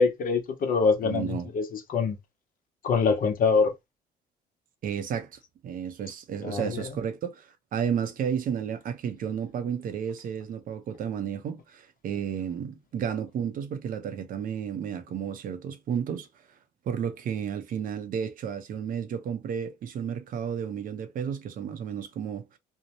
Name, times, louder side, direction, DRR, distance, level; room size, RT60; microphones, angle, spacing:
voice 1, 0.0-2.2 2.8-3.7 6.4-6.9, left 5 dB, 55° left, 0.8 m, -24 dB
voice 2, 1.0-1.5 4.8-16.3 16.9-22.6, right 8 dB, 55° right, 0.6 m, -32 dB
2.7 x 2.1 x 2.9 m
cardioid pair, 110°, 17 cm